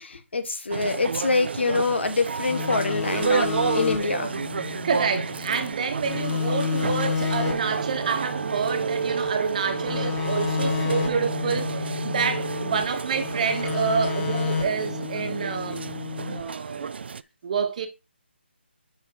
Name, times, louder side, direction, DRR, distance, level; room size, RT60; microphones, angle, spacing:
voice 1, 0.0-4.3, left 3 dB, 70° left, 1.5 m, -25 dB
sound 1, 0.7-17.2, right 6 dB, 60° right, 0.4 m, -32 dB
sound 2, 2.5-5.7 6.0-9.3 9.7-12.9 13.1-16.4, left 5 dB, 15° left, 1.7 m, -31 dB
voice 2, 4.8-15.8 16.3-17.0 17.4-17.9, right 5 dB, 40° right, 1.2 m, -28 dB
sound 3, 7.5-15.1, right 5 dB, 90° right, 1.3 m, -32 dB
7.4 x 5.6 x 4.7 m
hypercardioid pair, 160°, 6 cm